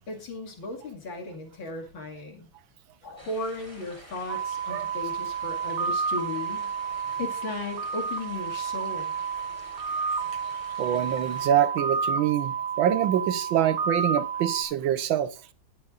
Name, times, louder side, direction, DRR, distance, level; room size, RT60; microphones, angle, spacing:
voice 1, 0.1-2.5 3.0-6.7 7.2-9.2, left 2 dB, 65° left, 3.1 m, -36 dB
sound 1, 3.2-11.5, right 1 dB, 15° right, 4.6 m, -49 dB
sound 2, 4.3-14.6, right 6 dB, 50° right, 1.2 m, -31 dB
voice 2, 10.8-15.3, right 10 dB, 75° right, 1.6 m, -25 dB
20.5 x 7.0 x 2.6 m
omnidirectional pair, 2.3 m